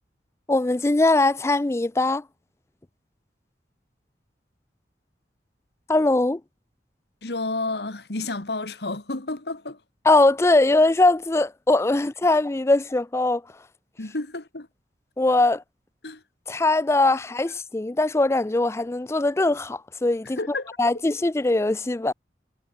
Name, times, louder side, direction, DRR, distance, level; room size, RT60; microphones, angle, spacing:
voice 1, 0.5-2.2 5.9-6.4 10.0-13.4 15.2-15.6 16.5-20.4 20.8-22.1, left 2 dB, 15° left, 0.4 m, -21 dB
voice 2, 7.2-9.8 14.0-14.7 16.0-16.2 20.4-20.8, left 2 dB, 65° left, 1.9 m, -31 dB
head